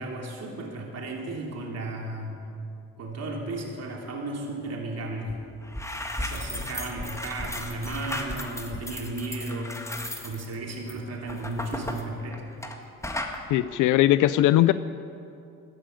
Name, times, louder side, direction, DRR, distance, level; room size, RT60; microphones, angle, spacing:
voice 1, 0.0-2.5 3.0-5.4 6.2-9.8 10.2-12.4, right 2 dB, 55° right, 0 dB, 3.0 m, -34 dB
sound 1, 5.3-5.4 5.6-12.8 13.0-13.4, left 1 dB, 10° left, 1.6 m, -35 dB
voice 2, 13.5-14.7, left 14 dB, 85° left, 14 dB, 0.5 m, -19 dB
15.0 x 10.0 x 9.0 m, 2.6 s
cardioid pair, 90°, 30 cm